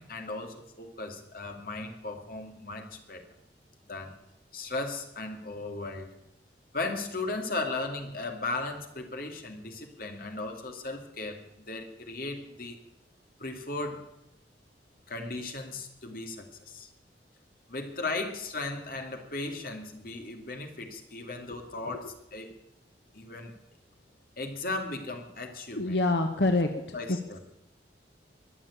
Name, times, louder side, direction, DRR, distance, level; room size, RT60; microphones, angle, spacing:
voice 1, 0.0-3.2 3.9-4.2 4.5-6.1 6.7-12.8 13.4-14.0 15.1-16.9 17.7-22.5 23.1-23.5 24.4-26.0 26.7-27.4, left 2 dB, 55° left, 4 dB, 2.4 m, -36 dB
voice 2, 25.8-26.7 27.1-27.4, left 2 dB, 80° left, 6 dB, 1.2 m, -26 dB
22.5 x 7.5 x 8.4 m, 0.83 s
head